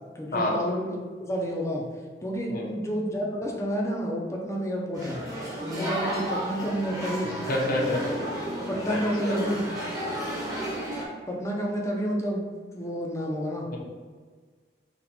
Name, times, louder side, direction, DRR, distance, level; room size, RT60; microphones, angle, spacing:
voice 1, 0.1-1.8 2.2-5.2 5.6-7.4 8.7-9.7 11.3-12.5 12.7-13.7, equal, 15° left, -1 dB, 0.7 m, -30 dB
sound 1, 4.9-11.1, right 1 dB, 20° right, 1.0 m, -33 dB
voice 2, 7.2-8.1 8.8-9.4 13.7-13.8, left 1 dB, 55° left, -2 dB, 0.8 m, -28 dB
4.1 x 2.4 x 4.3 m, 1.5 s
head